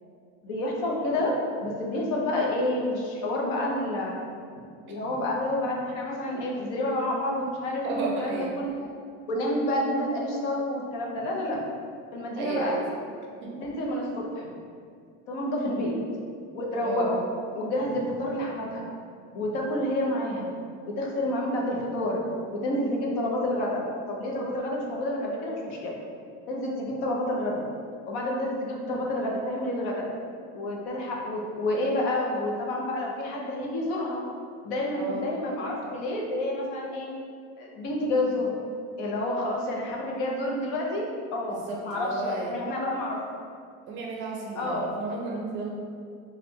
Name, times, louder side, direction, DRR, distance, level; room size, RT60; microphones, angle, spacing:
voice 1, 0.4-1.3 1.6-4.2 4.5-8.9 9.3-11.6 12.1-12.8 13.6-14.5 15.3-15.9 16.5-17.2 17.5-18.9 19.3-20.5 21.0-22.2 22.5-26.0 26.5-27.6 28.1-30.1 30.5-34.2 34.6-37.1 37.6-38.5 39.0-41.1 41.3-43.2 44.6-44.9, left 1 dB, 70° left, -2 dB, 0.9 m, -29 dB
voice 2, 7.8-8.5 12.3-13.0 13.4-13.5 15.6-15.7 16.8-17.1 34.9-35.3 41.5-42.5 43.9-45.7, right 3 dB, 35° right, -1 dB, 0.5 m, -33 dB
3.2 x 2.5 x 4.4 m, 2.2 s
cardioid pair, 155°, 35 cm